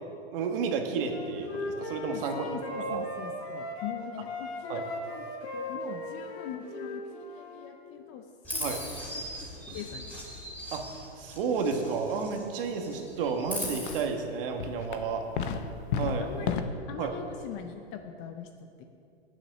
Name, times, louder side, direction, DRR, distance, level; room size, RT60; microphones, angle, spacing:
voice 1, 0.3-2.5 2.9-3.0 4.7-4.8 8.6-8.8 10.7-10.8 11.2-15.2 16.0-16.5 17.0-17.2, right 5 dB, 55° right, 4 dB, 1.4 m, -31 dB
Wind instrument woodwind instrument, 1.1-4.0 4.2-7.7, equal, 65° left, 1.9 m, -37 dB
voice 2, 2.1-5.3 5.5-8.3 8.5-9.2 9.7-10.1 15.3-15.6 16.2-18.7, left 8 dB, 25° left, 6 dB, 0.4 m, -42 dB
Chirp tweet, 8.4-12.5 12.8-14.0, left 1 dB, 5° left, 2.7 m, -39 dB
sound 1, 13.2-13.3 13.6-14.2 14.6-16.6, left 7 dB, 50° left, 0.8 m, -32 dB
9.2 x 7.1 x 6.6 m, 2.5 s
hypercardioid pair, 135°, 34 cm